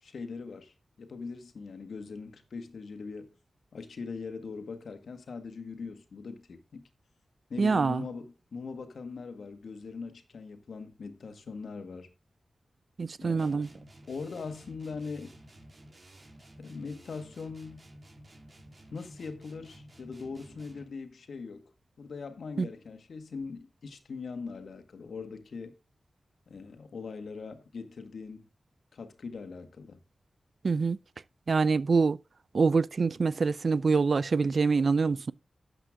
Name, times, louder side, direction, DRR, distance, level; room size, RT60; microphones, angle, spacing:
voice 1, 0.0-3.3 3.7-6.8 7.5-12.1 13.2-13.6 14.1-15.3 16.6-17.9 18.9-21.6 22.0-25.8 26.5-28.5 28.9-30.0, left 4 dB, 80° left, 1.7 m, -41 dB
voice 2, 7.6-8.0 13.0-13.7 22.6-22.7 30.6-31.0 31.5-32.2 32.5-35.3, right 4 dB, 65° right, 0.5 m, -25 dB
sound 1, 13.4-21.0, right 1 dB, 45° right, 3.6 m, -53 dB
12.5 x 8.1 x 3.6 m
cardioid pair, 50°, 0 cm